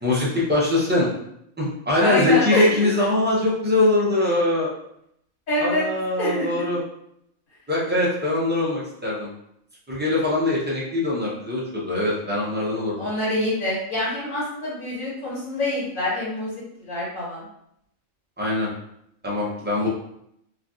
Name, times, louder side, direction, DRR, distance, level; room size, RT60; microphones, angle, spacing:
voice 1, 0.0-1.1 1.6-4.7 5.6-6.8 7.7-9.3 9.9-13.1 18.4-18.7 19.2-19.9, left 2 dB, 15° right, -6 dB, 0.3 m, -22 dB
voice 2, 2.0-2.7 5.5-5.8 6.2-6.6 13.0-17.4 19.8-19.9, left 1 dB, 80° left, -9 dB, 1.8 m, -26 dB
3.2 x 2.3 x 2.6 m, 0.75 s
omnidirectional pair, 1.4 m